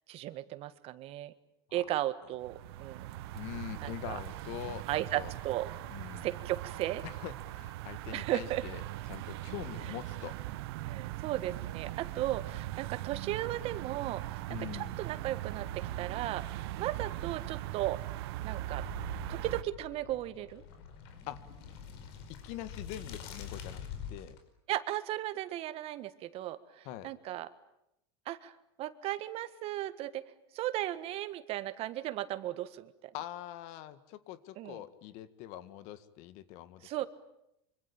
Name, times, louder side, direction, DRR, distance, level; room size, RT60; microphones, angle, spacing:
voice 1, 0.1-1.3 1.7-3.1 3.8-4.2 4.9-5.7 6.2-7.0 8.1-8.6 10.8-14.4 14.7-16.4 16.8-18.0 18.4-18.8 19.3-20.6 24.7-27.5 28.3-28.5 28.8-30.2 30.5-33.1 34.6-34.8 36.8-37.1, right 14 dB, 50° right, 13 dB, 1.6 m, -36 dB
sound 1, 2.4-19.6, right 15 dB, 80° right, 1.3 m, -40 dB
voice 2, 3.3-5.3 5.9-6.3 7.0-8.8 9.1-10.4 14.5-14.9 21.3-21.4 22.3-24.4 26.9-27.1 33.1-36.9, left 13 dB, 60° left, 13 dB, 1.9 m, -44 dB
sound 2, 18.7-24.4, left 7 dB, 75° left, 5.2 m, -46 dB
25.5 x 25.0 x 8.8 m, 0.82 s
supercardioid pair, 135°, 13 cm